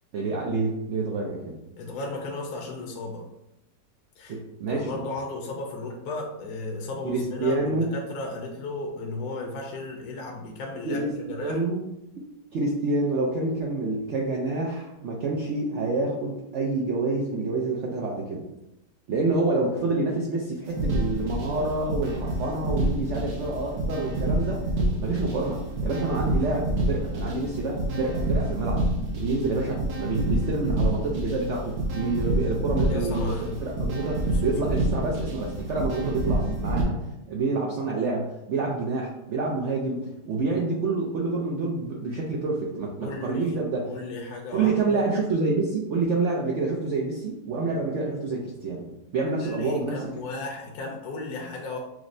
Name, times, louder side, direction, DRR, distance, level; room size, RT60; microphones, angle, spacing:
voice 1, 0.1-1.5 4.3-5.0 7.0-7.9 10.8-11.1 11.4-11.9 12.5-18.4 19.1-24.6 25.0-28.9 29.2-37.0 37.3-43.9 44.5-48.8 49.1-50.0, right 3 dB, 90° right, -2 dB, 0.6 m, -27 dB
voice 2, 1.8-3.2 4.2-4.4 4.7-11.6 32.9-33.9 34.3-34.5 43.0-43.6 43.8-45.0 49.2-51.8, left 2 dB, 70° left, 0 dB, 1.0 m, -35 dB
sound 1, 20.7-36.8, right 1 dB, 65° right, 1.2 m, -28 dB
6.0 x 2.1 x 2.5 m, 0.88 s
omnidirectional pair, 1.9 m